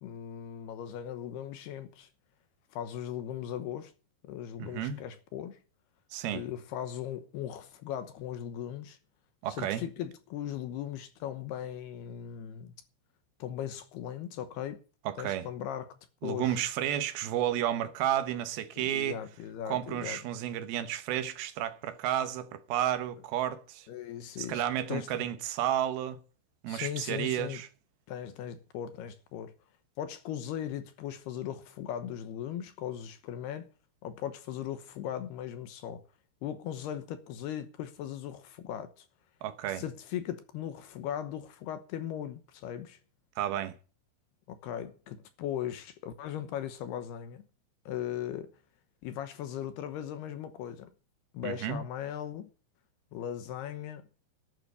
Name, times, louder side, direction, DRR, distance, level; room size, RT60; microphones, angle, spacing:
voice 1, 0.0-2.1 2.7-3.9 4.3-5.6 6.3-9.0 9.5-12.7 13.4-14.8 15.2-15.9 16.2-16.6 18.8-20.2 23.9-25.1 26.7-27.6 28.1-29.5 30.0-33.7 34.0-36.0 36.4-39.1 39.6-43.0 44.5-47.5 47.9-48.5 49.0-50.9 51.3-52.5 53.1-54.0, left 10 dB, 70° left, 2.6 m, -38 dB
voice 2, 4.6-5.0 6.1-6.4 9.4-9.8 15.1-15.5 16.2-19.2 19.7-23.9 24.4-26.2 26.6-27.7 39.4-39.8 43.4-43.8 51.4-51.8, right 11 dB, 75° right, 2.3 m, -32 dB
12.0 x 9.3 x 6.8 m
omnidirectional pair, 5.6 m